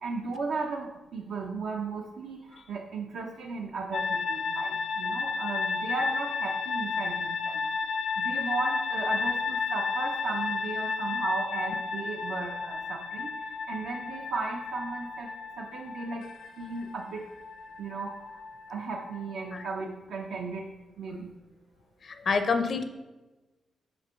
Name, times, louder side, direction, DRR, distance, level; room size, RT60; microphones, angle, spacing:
voice 1, 0.0-7.6 8.2-15.3 15.6-16.3 16.6-17.3 17.8-18.4 18.7-20.7 21.0-21.3, right 4 dB, 70° right, 0 dB, 0.7 m, -35 dB
sound 1, 3.9-19.7, left 4 dB, 80° left, 0.7 m, -33 dB
voice 2, 22.0-22.8, left 4 dB, 40° left, 8 dB, 0.5 m, -27 dB
6.4 x 4.4 x 5.6 m, 1.1 s
wide cardioid pair, 160°, 0 cm